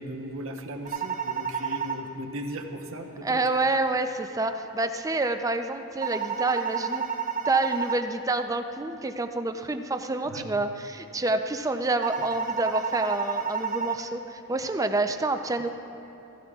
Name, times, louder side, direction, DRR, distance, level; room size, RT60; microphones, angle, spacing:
voice 1, 0.0-3.4 10.2-10.5, right 1 dB, 70° right, 3 dB, 1.0 m, -37 dB
sound 1, 0.9-2.0 6.0-8.0 12.0-14.0, right 6 dB, 40° right, 0.9 m, -30 dB
voice 2, 3.2-7.0 7.5-15.7, right 2 dB, 15° right, 7 dB, 0.5 m, -28 dB
16.5 x 15.5 x 2.4 m, 3.0 s
head